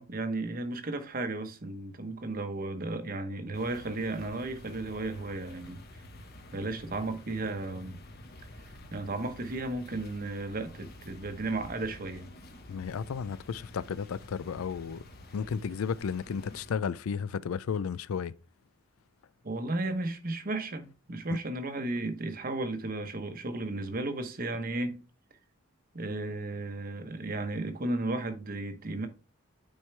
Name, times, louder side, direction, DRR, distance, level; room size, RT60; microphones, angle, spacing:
voice 1, 0.0-5.8 6.5-8.0 8.9-12.3 19.4-25.0 25.9-29.1, right 2 dB, 40° right, 1.0 m, -34 dB
sound 1, 3.5-16.7, left 1 dB, 50° left, 1.2 m, -50 dB
voice 2, 12.7-15.0 15.3-18.3 21.3-21.4, left 6 dB, 85° left, 0.4 m, -33 dB
8.9 x 4.7 x 3.3 m
head